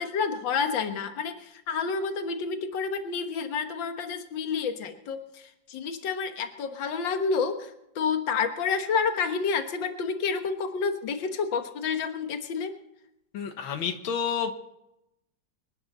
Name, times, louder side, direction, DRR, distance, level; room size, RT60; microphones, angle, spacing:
voice 1, 0.0-12.8, left 5 dB, 70° left, 7 dB, 2.0 m, -29 dB
voice 2, 13.3-14.5, left 7 dB, 85° left, 5 dB, 2.0 m, -29 dB
26.5 x 10.5 x 4.2 m, 0.83 s
omnidirectional pair, 2.1 m